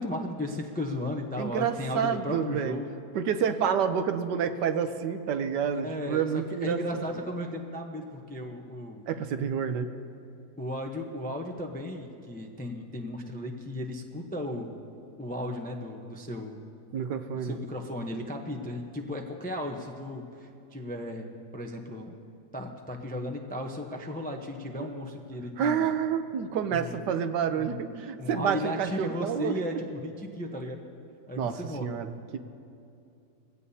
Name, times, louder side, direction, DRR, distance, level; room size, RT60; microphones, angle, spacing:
voice 1, 0.0-2.9 5.8-9.1 10.6-14.8 15.2-16.6 17.4-21.2 21.5-22.1 22.5-25.9 26.7-27.0 27.5-30.8 31.3-31.9, left 1 dB, 15° left, 2 dB, 0.3 m, -35 dB
voice 2, 1.4-2.8 3.1-6.8 9.1-9.9 16.9-17.6 24.8-24.9 25.6-29.6 31.4-32.4, right 7 dB, 80° right, 9 dB, 1.3 m, -29 dB
21.0 x 16.5 x 2.8 m, 2.7 s
omnidirectional pair, 1.8 m